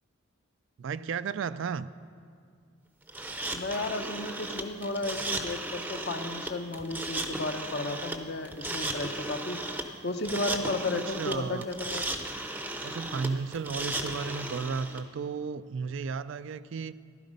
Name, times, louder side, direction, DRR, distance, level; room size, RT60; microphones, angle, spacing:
voice 1, 0.8-1.9 10.9-11.7 12.8-16.9, right 5 dB, 65° right, 15 dB, 0.3 m, -34 dB
sound 1, 3.1-15.0, right 1 dB, 10° right, 0.6 m, -35 dB
voice 2, 3.5-9.6 10.0-12.1, left 2 dB, 50° left, 7 dB, 0.8 m, -33 dB
14.5 x 12.0 x 5.2 m, 2.3 s
head